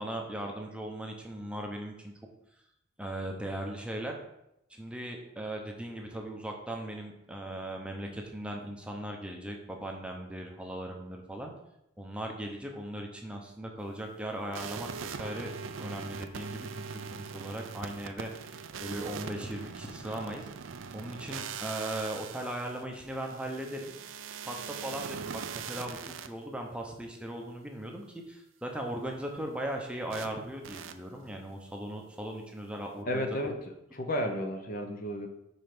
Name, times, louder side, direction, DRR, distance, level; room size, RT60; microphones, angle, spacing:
voice 1, 0.0-2.1 3.0-4.2 4.7-11.5 12.0-15.5 15.8-16.8 17.1-18.3 18.8-20.5 20.9-23.9 24.4-33.3, right 1 dB, 5° right, 1 dB, 0.8 m, -38 dB
sound 1, 14.5-26.3 30.1-30.3 30.6-30.9, right 6 dB, 70° right, 0.5 m, -41 dB
voice 2, 33.1-33.5 33.9-35.3, left 1 dB, 45° left, 5 dB, 0.8 m, -32 dB
5.3 x 4.6 x 6.0 m, 0.83 s
head